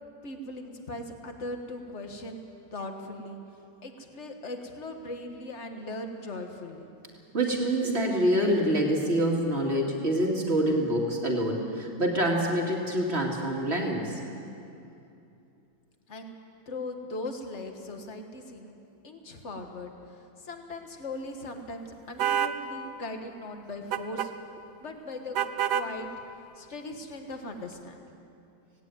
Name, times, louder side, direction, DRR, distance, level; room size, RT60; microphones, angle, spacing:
voice 1, 0.2-2.4 2.7-3.4 3.8-6.9 16.1-16.3 16.7-18.8 19.0-24.3 24.8-25.4 25.7-26.1 26.6-28.1, left 2 dB, 40° left, 4 dB, 1.9 m, -39 dB
voice 2, 7.3-14.2, right 1 dB, 35° right, -1 dB, 2.7 m, -26 dB
sound 1, 22.2-22.6 23.9-24.3 25.4-25.9, right 10 dB, 70° right, 1.3 m, -27 dB
17.5 x 17.5 x 9.3 m, 2.7 s
omnidirectional pair, 2.0 m